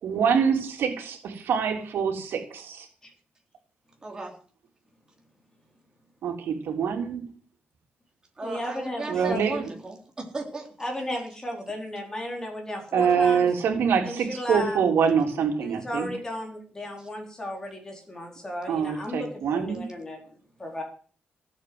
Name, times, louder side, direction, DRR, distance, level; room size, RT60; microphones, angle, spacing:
voice 1, 0.0-2.9 6.2-7.2 9.1-9.7 12.9-16.1 18.7-19.9, right 6 dB, 80° right, 3 dB, 3.5 m, -25 dB
voice 2, 4.0-4.3 8.4-10.7 17.0-17.1, right 2 dB, 20° right, 1 dB, 3.8 m, -36 dB
voice 3, 8.4-9.5 10.8-13.5 14.0-14.8 15.6-20.2 20.6-20.8, left 1 dB, 15° left, 1 dB, 4.3 m, -34 dB
16.5 x 8.2 x 8.0 m, 0.43 s
wide cardioid pair, 180°, 4 cm